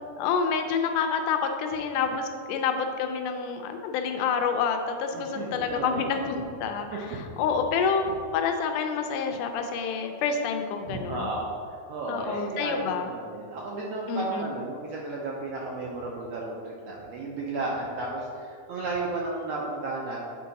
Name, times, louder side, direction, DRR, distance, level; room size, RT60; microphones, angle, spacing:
voice 1, 0.2-7.1 7.4-11.3 12.1-13.1 14.1-14.5, left 6 dB, 85° left, 5 dB, 2.2 m, -28 dB
voice 2, 5.1-6.0 6.9-7.2 10.8-20.2, right 2 dB, 75° right, -3 dB, 1.5 m, -33 dB
8.7 x 3.7 x 4.0 m, 2.2 s
omnidirectional pair, 3.6 m